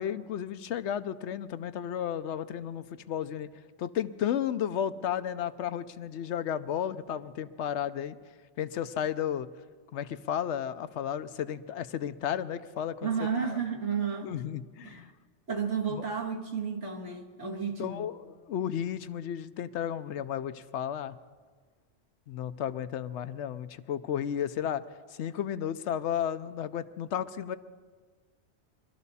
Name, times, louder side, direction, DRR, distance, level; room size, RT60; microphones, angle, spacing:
voice 1, 0.0-3.5 3.8-8.2 8.6-9.5 9.9-13.1 14.2-15.1 15.9-16.0 17.8-21.1 22.3-24.8 25.2-27.6, left 9 dB, 80° left, 12 dB, 0.9 m, -33 dB
voice 2, 13.0-14.3 14.8-15.0 15.5-18.1, right 6 dB, 85° right, 0 dB, 2.1 m, -32 dB
23.5 x 13.0 x 4.2 m, 1.5 s
omnidirectional pair, 1.2 m